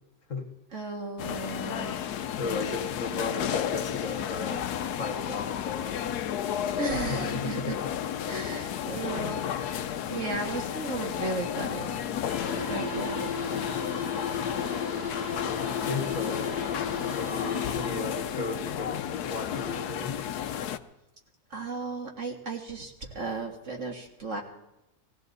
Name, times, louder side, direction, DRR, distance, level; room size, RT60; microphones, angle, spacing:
voice 1, 0.7-2.0 6.8-7.8 8.3-9.8 10.1-11.9 12.7-13.3 21.5-24.4, right 3 dB, 50° right, 2 dB, 2.1 m, -35 dB
sound 1, 1.2-20.8, left 9 dB, 80° left, 1.2 m, -32 dB
voice 2, 2.4-6.0 7.1-7.8 9.2-9.3 15.9-16.6 17.2-20.2, left 4 dB, 55° left, 5 dB, 1.8 m, -35 dB
sound 2, 12.3-18.2, left 4 dB, 70° right, 3.8 m, -35 dB
19.5 x 15.5 x 4.1 m, 0.92 s
omnidirectional pair, 1.6 m